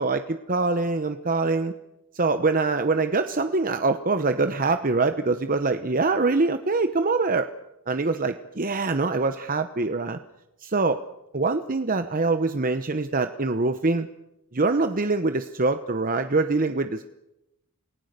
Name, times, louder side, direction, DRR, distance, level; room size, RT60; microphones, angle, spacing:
voice 1, 0.0-1.7 2.1-7.5 7.9-10.2 10.6-11.0 11.3-14.1 14.5-17.0, right 3 dB, 40° right, 9 dB, 0.9 m, -24 dB
29.0 x 19.0 x 6.7 m, 0.90 s
head